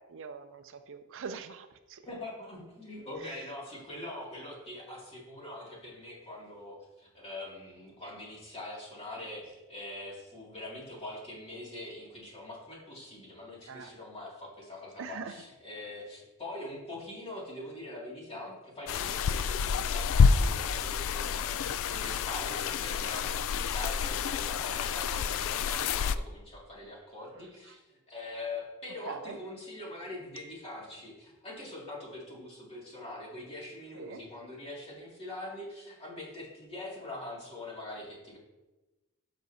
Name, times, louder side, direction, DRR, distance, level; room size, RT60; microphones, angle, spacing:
voice 1, 0.0-2.0 3.3-3.4 13.7-13.9 15.0-15.3 29.1-29.4 33.9-34.2, right 5 dB, 60° right, 9 dB, 0.5 m, -42 dB
voice 2, 2.1-38.4, left 1 dB, 25° left, -4 dB, 2.4 m, -43 dB
sound 1, 18.9-26.2, left 6 dB, 65° left, 0.3 m, -28 dB
12.5 x 5.3 x 2.8 m, 1.1 s
head